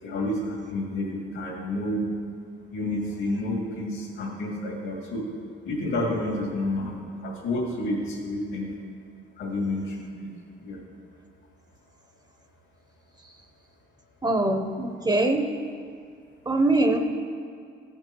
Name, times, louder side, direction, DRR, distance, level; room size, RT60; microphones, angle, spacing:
voice 1, 0.0-2.1 2.7-5.3 5.6-8.7 9.4-10.3 10.6-10.8, left 1 dB, 80° left, -1 dB, 2.2 m, -30 dB
voice 2, 14.2-15.5 16.5-17.0, right 2 dB, 20° right, 5 dB, 0.7 m, -23 dB
14.5 x 5.3 x 4.5 m, 2.2 s
cardioid pair, 90°, 20 cm